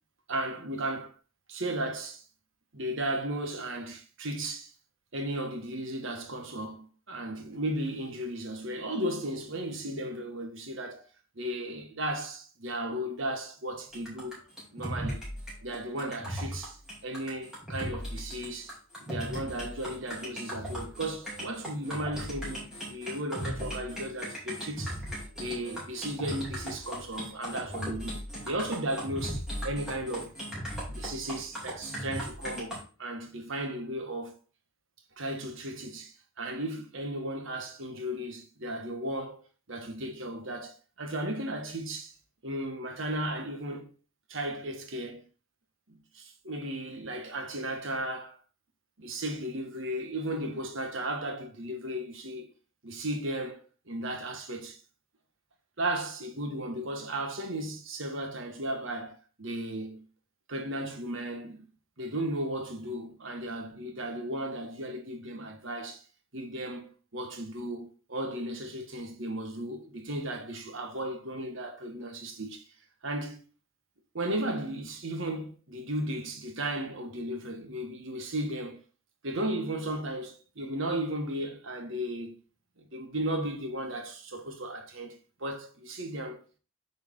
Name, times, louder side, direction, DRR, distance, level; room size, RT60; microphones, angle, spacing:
voice 1, 0.3-1.1 1.5-2.2 2.7-4.7 5.1-11.1 11.3-14.4 14.7-15.2 15.6-18.7 19.0-25.0 25.4-30.3 30.9-34.4 35.2-39.4 39.7-42.1 42.4-43.9 44.3-45.2 45.9-48.4 49.0-52.5 52.8-53.6 53.9-54.8 55.8-60.1 60.5-61.7 62.0-66.0 66.3-72.7 73.0-73.4 74.1-78.8 79.2-82.4 82.8-86.4, right 1 dB, 60° right, 1.4 m, -35 dB
sound 1, 13.9-32.8, equal, 5° right, 2.9 m, -37 dB
8.5 x 4.6 x 3.7 m
head